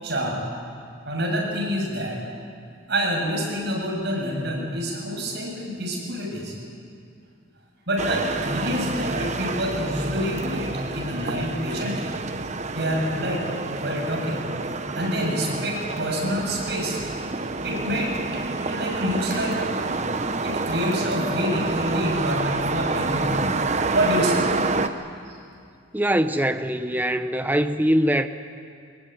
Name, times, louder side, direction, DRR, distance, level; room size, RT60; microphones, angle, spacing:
voice 1, 0.0-0.4 1.0-2.2 2.9-6.5 7.9-12.1 12.7-13.4 13.8-14.4 14.9-17.0 17.6-18.1 18.7-19.7 20.4-23.4 23.9-24.5 25.2-25.4, equal, 55° right, -1 dB, 7.6 m, -27 dB
sound 1, 8.0-24.9, right 3 dB, 35° right, 1.0 m, -28 dB
voice 2, 25.9-28.3, equal, 10° right, 9 dB, 0.8 m, -22 dB
24.5 x 22.0 x 9.5 m, 2.3 s
head